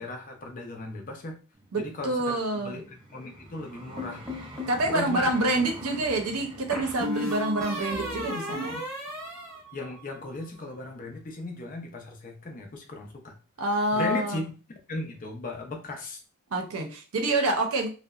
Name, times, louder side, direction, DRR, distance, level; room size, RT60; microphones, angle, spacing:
voice 1, 0.0-1.4 1.8-4.5 4.8-5.3 9.7-13.3 13.9-14.5 14.9-16.2, left 2 dB, 40° left, 2 dB, 0.5 m, -36 dB
Vehicle, 1.5-10.6 11.2-11.4, right 1 dB, 20° right, 0.4 m, -47 dB
voice 2, 1.7-2.8 4.7-8.8 13.6-14.4 16.5-17.9, right 2 dB, 80° right, 4 dB, 0.6 m, -27 dB
sound 1, 4.0-4.8 6.7-10.3, left 1 dB, 5° left, 0.7 m, -34 dB
2.7 x 2.1 x 2.3 m, 0.35 s
head